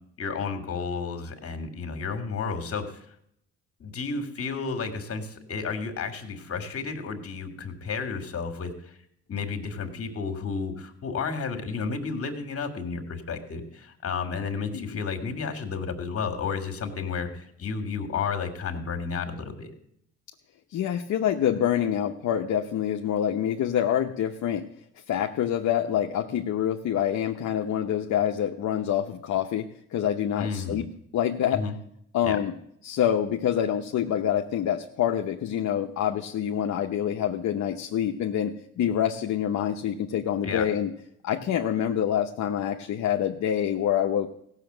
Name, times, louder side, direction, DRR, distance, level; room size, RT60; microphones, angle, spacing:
voice 1, 0.2-3.0 3.8-9.0 9.3-19.7 30.4-30.8 31.5-31.8 32.2-32.4 40.4-40.7, left 5 dB, 50° left, 6 dB, 2.2 m, -32 dB
voice 2, 20.7-24.7 25.1-29.7 29.9-30.9 31.1-31.6 32.1-32.5 32.8-40.9 41.2-44.3, left 10 dB, 65° left, 3 dB, 0.9 m, -26 dB
15.5 x 6.6 x 7.9 m, 0.72 s
cardioid pair, 90°, 30 cm